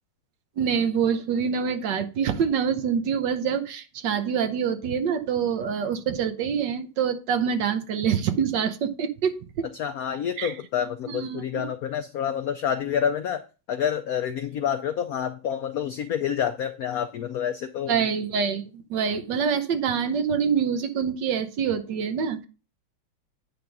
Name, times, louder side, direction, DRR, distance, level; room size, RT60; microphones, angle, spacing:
voice 1, 0.6-9.7 10.4-10.5 11.1-11.7 17.9-22.5, right 7 dB, 65° right, 9 dB, 1.4 m, -26 dB
voice 2, 9.7-13.4 13.7-18.0, left 8 dB, 85° left, 9 dB, 0.8 m, -28 dB
9.5 x 3.5 x 5.9 m, 0.33 s
omnidirectional pair, 2.2 m